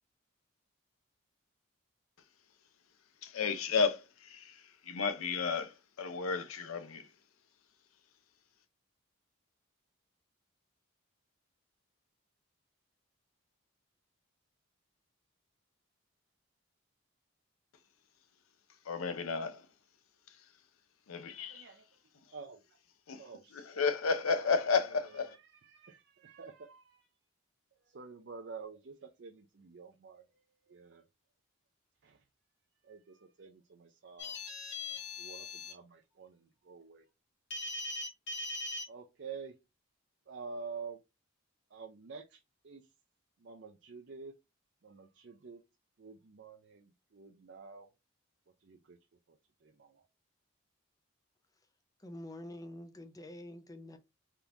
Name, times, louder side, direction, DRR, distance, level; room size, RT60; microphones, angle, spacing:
voice 1, 3.2-4.6 4.9-7.1 18.9-19.6 21.1-21.7 23.1-23.2 23.5-25.3, left 5 dB, 80° left, 0.6 m, -32 dB
voice 2, 21.5-21.9 22.3-22.8 23.2-23.7 24.4-24.6 24.9-27.1 27.8-31.0 32.0-32.2 32.8-34.4 34.8-37.1 38.9-39.6 40.3-41.0 41.7-42.9 43.4-44.4 44.8-45.6 46.0-47.9 48.6-49.0 49.3-50.1, right 5 dB, 55° right, 0.5 m, -49 dB
sound 1, 34.2-35.7 37.5-38.9, left 2 dB, 55° left, 1.1 m, -40 dB
voice 3, 52.0-54.0, left 1 dB, 15° left, 0.4 m, -46 dB
3.5 x 2.9 x 2.4 m
head